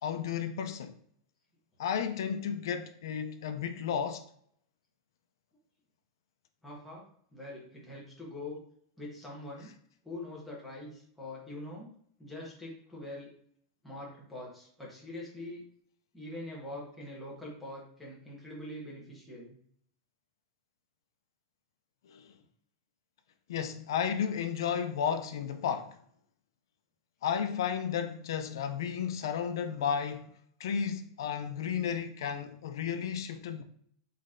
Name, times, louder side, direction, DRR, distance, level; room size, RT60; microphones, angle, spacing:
voice 1, 0.0-0.9 1.8-4.2 22.1-22.3 23.5-26.0 27.2-30.3 30.6-33.6, left 7 dB, 80° left, 0.5 m, -33 dB
voice 2, 6.6-7.0 7.3-8.6 9.0-9.7 10.0-11.9 12.2-13.3 13.8-15.6 16.1-19.6, left 1 dB, ahead, 1.3 m, -43 dB
4.0 x 3.2 x 3.7 m
supercardioid pair, 165°, 2 cm